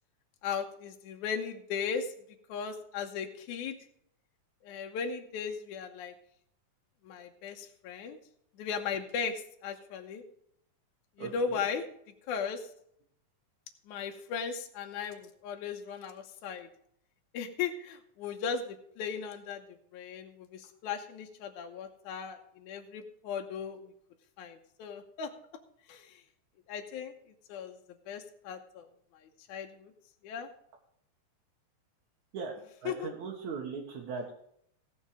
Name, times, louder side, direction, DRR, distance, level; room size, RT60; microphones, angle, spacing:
voice 1, 0.4-2.1 2.5-3.8 4.6-6.1 7.0-8.2 8.6-10.2 11.2-11.9 12.3-12.7 13.9-16.7 17.3-19.6 19.9-23.9 24.4-25.3 25.9-26.2 26.7-27.1 27.5-27.8 28.1-28.9 29.2-29.9 30.2-30.5 32.9-33.1, left 6 dB, 80° left, 3 dB, 2.4 m, -37 dB
voice 2, 11.2-11.6 32.3-34.3, right 5 dB, 70° right, -2 dB, 2.8 m, -39 dB
17.0 x 6.5 x 5.0 m, 0.69 s
omnidirectional pair, 3.5 m